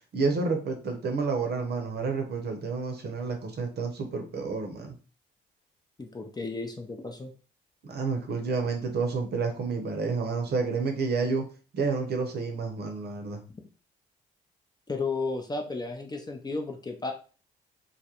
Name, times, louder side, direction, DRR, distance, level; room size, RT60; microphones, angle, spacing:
voice 1, 0.1-5.0 7.8-11.4 11.7-13.4, right 4 dB, 55° right, 4 dB, 0.7 m, -29 dB
voice 2, 6.0-7.3 14.9-17.1, left 3 dB, 20° left, 3 dB, 0.6 m, -33 dB
2.3 x 2.1 x 2.9 m, 0.37 s
hypercardioid pair, 50°, 20 cm